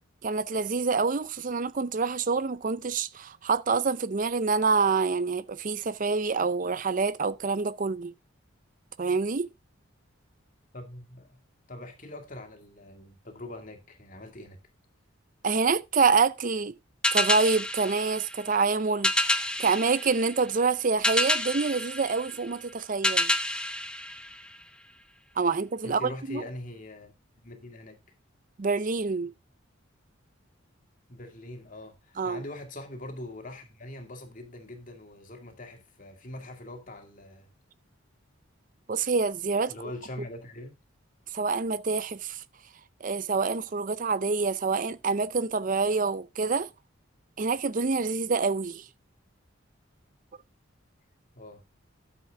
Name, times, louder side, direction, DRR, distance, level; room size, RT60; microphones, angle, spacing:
voice 1, 0.2-8.1 9.0-9.5 15.4-16.7 17.1-23.3 25.4-26.4 28.6-29.3 32.2-32.4 38.9-39.7 41.3-42.4 43.0-46.7 47.4-48.9, right 4 dB, 40° right, 0.5 m, -27 dB
voice 2, 10.7-11.4 11.7-14.6 25.8-27.1 27.4-28.0 31.1-37.5 39.7-40.7 51.3-51.6, left 1 dB, 40° left, 2.2 m, -42 dB
sound 1, 17.0-24.9, left 1 dB, 5° left, 0.7 m, -29 dB
12.5 x 7.3 x 3.6 m
head